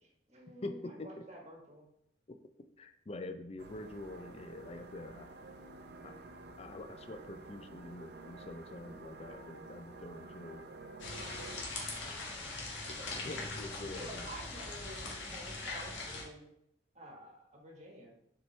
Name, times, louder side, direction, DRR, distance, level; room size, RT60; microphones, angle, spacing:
voice 1, 0.0-1.9 12.4-12.7 13.0-13.1 13.5-16.5 16.9-18.2, right 1 dB, 35° right, 0 dB, 1.3 m, -50 dB
voice 2, 0.6-1.3 2.3-2.4 2.8-5.3 6.0-6.2 6.6-10.7 12.9-14.3, left 2 dB, 35° left, 8 dB, 0.4 m, -45 dB
sound 1, 3.6-11.6, right 2 dB, 60° right, 0.6 m, -50 dB
sound 2, 11.0-16.2, left 3 dB, 90° left, 1.5 m, -41 dB
7.3 x 4.5 x 3.2 m, 0.74 s
head